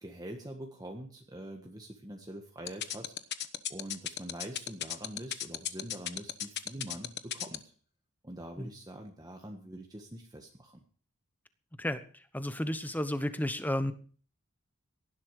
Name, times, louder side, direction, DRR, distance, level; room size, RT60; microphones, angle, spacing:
voice 1, 0.0-3.1 3.7-7.6 8.2-10.8, right 1 dB, 15° right, 2 dB, 1.5 m, -44 dB
sound 1, 2.7-7.6, left 11 dB, 50° left, 1.0 m, -34 dB
voice 2, 11.8-13.9, left 1 dB, 10° left, 11 dB, 1.1 m, -33 dB
18.0 x 11.5 x 4.9 m, 0.43 s
head